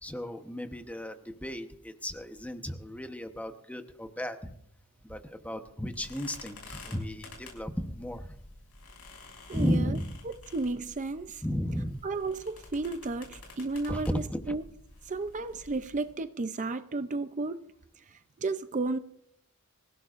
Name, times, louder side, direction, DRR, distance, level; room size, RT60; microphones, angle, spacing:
voice 1, 0.0-4.5 5.0-8.4 9.5-10.2 11.4-12.0 13.9-14.6, equal, 5° left, 1.0 m, -34 dB
sound 1, 5.9-16.1, left 3 dB, 75° left, 6.7 m, -50 dB
voice 2, 9.5-10.0 10.2-11.4 12.0-14.6 15.0-17.7 18.1-19.0, right 3 dB, 35° right, 0.5 m, -33 dB
26.0 x 16.5 x 2.5 m
head